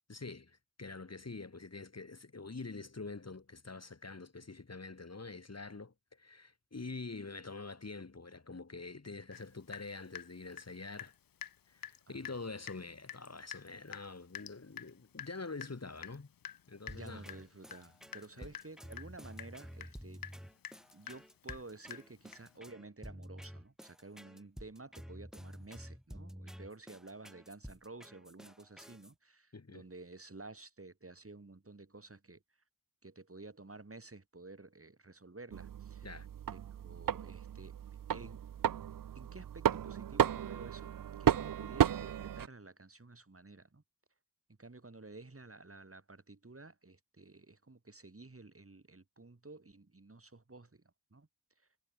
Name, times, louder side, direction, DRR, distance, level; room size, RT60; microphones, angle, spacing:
voice 1, 0.1-11.1 11.7-16.3 16.7-17.3 18.4-18.5 29.5-29.8 36.0-36.3, left 3 dB, 50° left, 1.7 m, -46 dB
Water tap faucet / Drip, 9.3-9.4 9.7-11.1 11.4-11.6 11.8-12.0 12.2-12.4 12.7-12.8 13.1-22.6, left 9 dB, 85° left, 0.5 m, -48 dB
sound 1, 16.9-29.1, equal, ahead, 2.6 m, -50 dB
voice 2, 16.9-20.3 20.9-32.4 33.0-36.2 36.5-37.8 38.1-38.4 39.1-40.9 41.2-43.8 44.6-50.8 51.1-51.3 51.6-51.7, right 3 dB, 40° right, 2.7 m, -52 dB
sound 2, 35.5-42.5, right 10 dB, 70° right, 0.5 m, -33 dB
wide cardioid pair, 60°, 34 cm